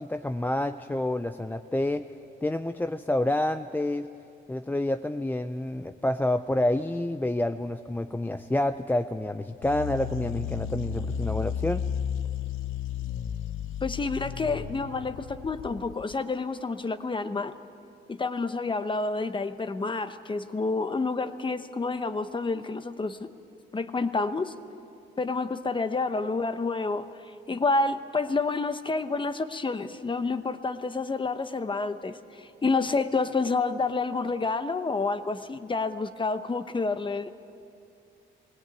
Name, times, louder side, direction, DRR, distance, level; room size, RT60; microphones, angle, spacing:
voice 1, 0.0-2.0 2.4-4.1 4.5-11.8, left 1 dB, 10° left, 9 dB, 0.5 m, -28 dB
sound 1, 9.6-16.1, left 8 dB, 85° left, 0.7 m, -33 dB
voice 2, 13.8-17.5 18.1-23.3 23.7-24.5 25.2-37.3, left 3 dB, 25° left, 10 dB, 1.0 m, -29 dB
19.5 x 18.0 x 9.2 m, 2.6 s
cardioid pair, 90°, 20 cm